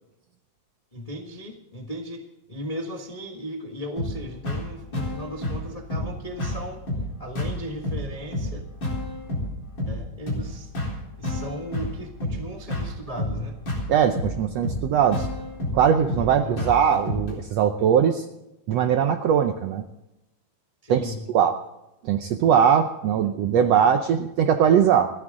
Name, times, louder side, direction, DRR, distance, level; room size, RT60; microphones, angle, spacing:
voice 1, 0.9-6.8 7.2-8.6 9.8-10.7 11.2-13.6 16.4-16.6 20.8-21.3 23.2-23.3, equal, 60° left, 1 dB, 0.3 m, -36 dB
sound 1, 4.0-17.4, left 1 dB, 35° left, 4.5 m, -30 dB
voice 2, 13.9-15.3 15.7-18.2 18.7-19.8 20.9-21.5 22.0-25.1, right 8 dB, 80° right, 7 dB, 1.5 m, -20 dB
29.0 x 9.8 x 3.8 m, 0.92 s
omnidirectional pair, 3.8 m